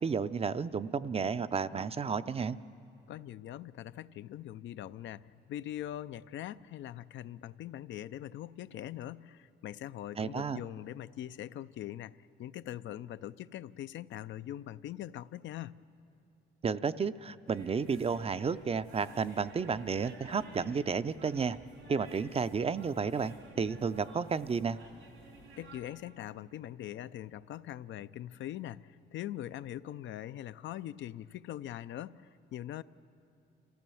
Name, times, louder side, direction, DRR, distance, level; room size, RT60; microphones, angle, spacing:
voice 1, 0.0-2.6 10.2-10.6 16.6-21.6 21.9-24.8, right 5 dB, 30° right, 14 dB, 0.5 m, -32 dB
voice 2, 3.1-15.8 25.6-32.8, left 12 dB, 70° left, 14 dB, 0.5 m, -42 dB
sound 1, 17.5-25.8, right 2 dB, 85° right, 4.3 m, -54 dB
26.0 x 15.5 x 7.0 m, 2.5 s
cardioid pair, 90°, 20 cm